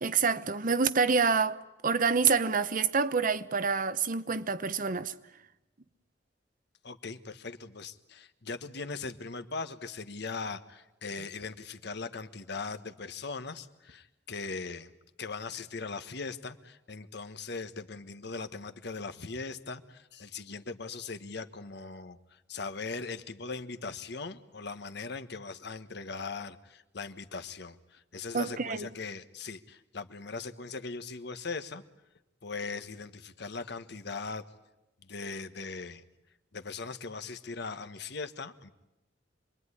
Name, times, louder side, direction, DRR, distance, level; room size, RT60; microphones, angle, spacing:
voice 1, 0.0-5.1 28.3-28.9, right 5 dB, 50° right, 0.9 m, -27 dB
voice 2, 6.8-14.9 15.2-31.8 32.4-34.4 35.0-36.0 36.5-38.7, left 4 dB, 65° left, 1.3 m, -40 dB
27.0 x 22.0 x 9.8 m
head